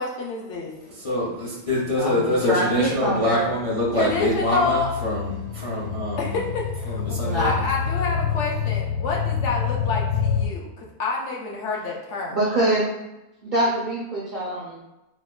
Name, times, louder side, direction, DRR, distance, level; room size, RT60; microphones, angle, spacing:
voice 1, 0.0-0.7 4.0-4.9 6.2-12.4, left 3 dB, 65° left, -2 dB, 0.8 m, -29 dB
voice 2, 0.9-6.4 6.9-7.5, left 1 dB, 45° left, -7 dB, 0.4 m, -25 dB
voice 3, 1.9-3.4 7.2-7.5 12.3-12.8 13.4-14.8, right 1 dB, 60° right, -7 dB, 0.5 m, -24 dB
sound 1, 3.0-10.5, left 7 dB, 80° left, 1.1 m, -28 dB
4.1 x 2.1 x 2.3 m, 0.95 s
omnidirectional pair, 1.5 m